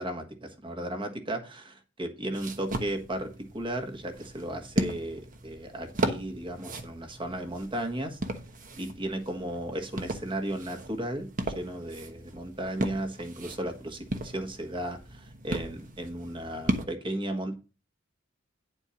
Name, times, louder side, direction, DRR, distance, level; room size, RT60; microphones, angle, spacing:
voice 1, 0.0-3.3 3.5-8.2 8.8-11.3 11.5-17.6, right 1 dB, 25° right, 4 dB, 1.4 m, -35 dB
sound 1, 2.3-16.9, right 2 dB, 45° right, 1.1 m, -36 dB
9.9 x 4.5 x 5.7 m, 0.32 s
head